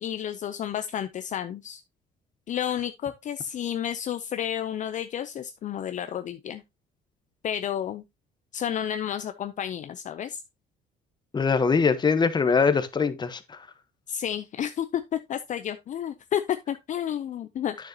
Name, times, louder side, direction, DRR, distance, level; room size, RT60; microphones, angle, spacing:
voice 1, 0.0-1.8 2.5-6.6 7.4-8.0 8.5-10.4 14.1-15.0 15.3-17.8, left 10 dB, 45° left, 0.6 m, -31 dB
voice 2, 11.3-13.6, left 5 dB, 25° left, 1.1 m, -22 dB
9.5 x 6.6 x 2.8 m
cardioid pair, 110°, 17 cm